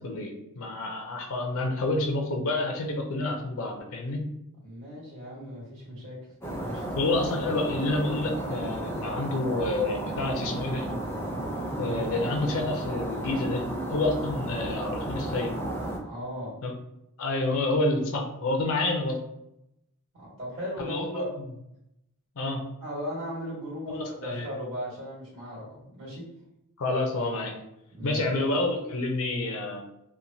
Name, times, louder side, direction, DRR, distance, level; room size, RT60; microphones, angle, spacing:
voice 1, 0.0-4.3 6.9-10.9 11.8-13.6 13.9-15.5 16.6-16.7 17.2-19.2 20.9-21.5 22.4-22.6 23.9-24.5 26.8-27.6 28.0-29.8, left 2 dB, 65° left, 3 dB, 0.5 m, -28 dB
voice 2, 4.6-6.2 6.6-6.8 16.0-16.5 20.1-21.3 22.8-26.2 27.9-28.2, equal, 60° right, -7 dB, 1.3 m, -37 dB
sound 1, 6.4-16.0, right 1 dB, 10° left, 0.4 m, -33 dB
3.0 x 2.1 x 2.6 m, 0.82 s
head